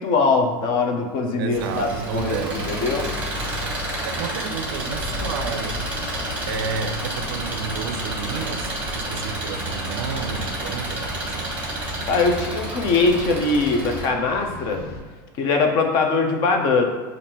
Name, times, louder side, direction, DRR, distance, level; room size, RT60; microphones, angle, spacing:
voice 1, 0.0-3.1 12.1-14.8 15.4-16.9, left 3 dB, 40° left, 0.5 m, -21 dB
voice 2, 1.4-2.8 3.8-5.9 6.5-11.5, right 6 dB, 85° right, 0.4 m, -31 dB
Engine, 1.5-14.0, right 1 dB, 15° right, 1.0 m, -30 dB
sound 1, 4.9-15.0, left 2 dB, 85° left, 0.8 m, -36 dB
5.2 x 2.5 x 2.9 m
supercardioid pair, 165°, 12 cm